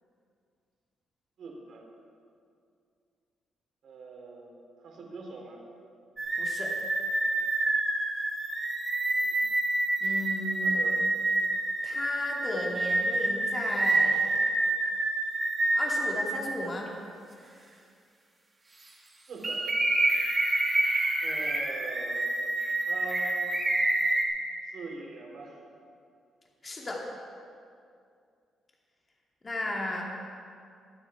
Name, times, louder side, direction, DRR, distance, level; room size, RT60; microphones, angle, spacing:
voice 1, 1.4-1.8 3.8-5.6 9.1-9.5 10.6-11.0 19.3-19.7 21.2-22.3 22.8-23.6 24.6-25.6, right 3 dB, 65° right, -1 dB, 3.7 m, -43 dB
sound 1, 6.2-16.3 16.9-17.0 19.4-24.2, right 2 dB, 25° right, 3.0 m, -28 dB
voice 2, 6.3-6.7 10.0-10.8 11.8-14.4 15.7-16.9 26.6-27.0 29.4-30.0, left 1 dB, 30° left, -2 dB, 2.5 m, -34 dB
23.5 x 9.2 x 4.6 m, 2.4 s
cardioid pair, 100°, 0 cm